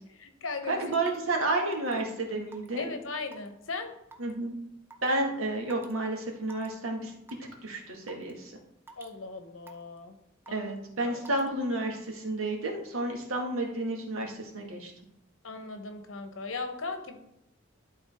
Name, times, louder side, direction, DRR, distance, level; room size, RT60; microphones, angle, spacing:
voice 1, 0.1-0.9 2.8-3.9 9.0-10.2 10.5-10.7 11.0-11.2 15.4-17.2, left 3 dB, 70° left, 7 dB, 1.0 m, -38 dB
voice 2, 0.7-2.9 4.2-4.5 5.0-7.1 7.6-8.5 10.5-14.9, right 2 dB, 90° right, 0 dB, 1.8 m, -31 dB
Raindrop / Water tap faucet / Drip, 0.9-1.2 1.7-2.0 2.5-2.8 3.3-3.6 4.1-4.3 4.9-5.1 5.7-5.9 6.4-6.7 7.3-7.5 8.1-8.3 8.9-9.1 9.7-10.0 10.5-10.8 11.2-11.5, right 3 dB, 10° right, 0.7 m, -49 dB
11.5 x 3.9 x 3.5 m, 0.81 s
head